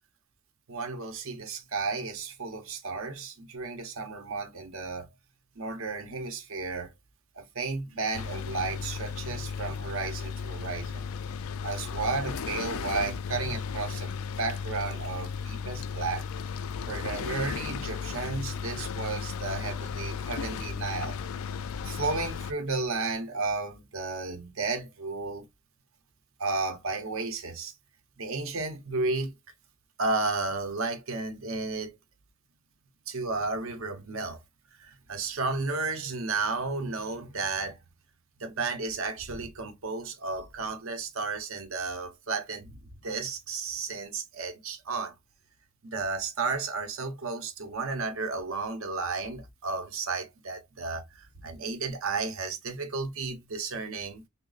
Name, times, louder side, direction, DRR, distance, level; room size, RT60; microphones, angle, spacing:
voice 1, 0.7-5.1 5.6-6.9 7.4-11.1 11.6-16.3 16.9-21.2 21.8-25.4 26.4-27.7 28.2-29.3 30.0-32.0 33.1-34.4 34.8-37.8 38.4-45.1 45.8-54.2, right 3 dB, 70° right, 0.8 m, -33 dB
sound 1, 8.1-22.5, left 6 dB, 70° left, 0.4 m, -35 dB
3.1 x 2.1 x 3.8 m
head